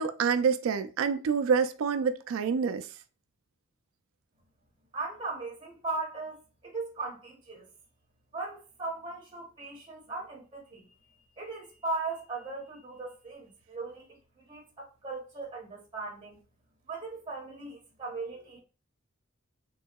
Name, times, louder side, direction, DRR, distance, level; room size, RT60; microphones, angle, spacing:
voice 1, 0.0-2.9, right 6 dB, 70° right, 0.3 m, -27 dB
voice 2, 4.9-6.4 6.6-7.6 8.3-10.9 11.4-14.2 14.5-16.4 16.9-18.6, right 3 dB, 25° right, 0.7 m, -38 dB
3.0 x 2.7 x 2.2 m
head